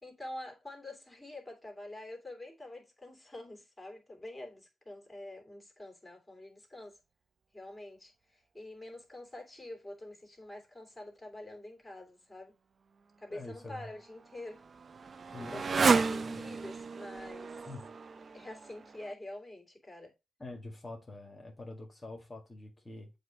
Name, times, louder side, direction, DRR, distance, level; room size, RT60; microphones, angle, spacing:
voice 1, 0.0-7.0 7.5-12.5 13.2-14.6 15.1-15.6 16.1-17.7 18.3-20.1, left 1 dB, 10° left, 3.0 m, -47 dB
voice 2, 13.3-13.9 15.3-16.5 17.7-17.9 20.4-23.1, left 2 dB, 30° left, 1.9 m, -45 dB
Motorcycle, 13.7-19.1, right 4 dB, 50° right, 0.5 m, -33 dB
7.8 x 2.7 x 5.0 m
cardioid pair, 70°, 0 cm